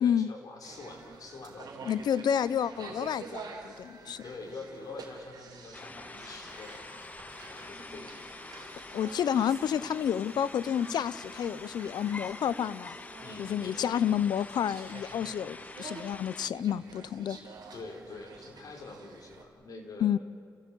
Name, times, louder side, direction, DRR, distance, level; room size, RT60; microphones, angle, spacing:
voice 1, 0.0-1.9 4.2-6.8 7.4-8.3 13.2-13.9 17.7-20.1, left 3 dB, 60° left, 1 dB, 4.4 m, -45 dB
sound 1, 0.6-19.4, right 4 dB, 70° right, 3.8 m, -49 dB
voice 2, 1.9-4.2 8.9-12.9 13.4-17.4 20.0-20.2, left 9 dB, 85° left, 17 dB, 0.7 m, -30 dB
sound 2, 5.7-16.5, left 3 dB, 20° left, 0.5 m, -46 dB
sound 3, 6.6-15.0, right 3 dB, 45° right, 7.8 m, -61 dB
29.5 x 15.5 x 8.4 m, 2.5 s
wide cardioid pair, 135°, 7 cm